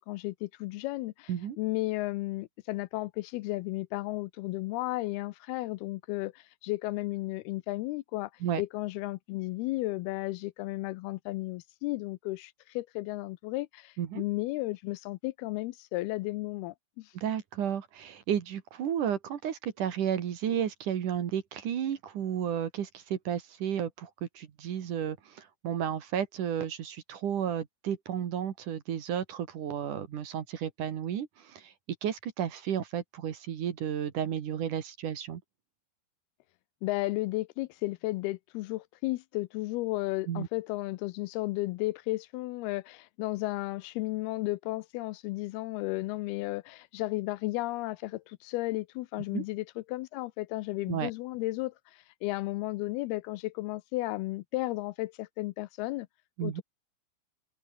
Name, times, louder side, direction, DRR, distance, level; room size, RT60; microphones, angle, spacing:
voice 1, 0.0-1.3 1.6-8.3 8.6-17.1 36.8-56.1 56.4-56.6, left 19 dB, 80° left, 2.5 m, -34 dB
voice 2, 17.1-31.7 32.0-35.4 40.3-40.5 49.3-49.4 50.9-51.1 56.4-56.6, right 9 dB, 55° right, 3.0 m, -32 dB
open air
omnidirectional pair, 4.6 m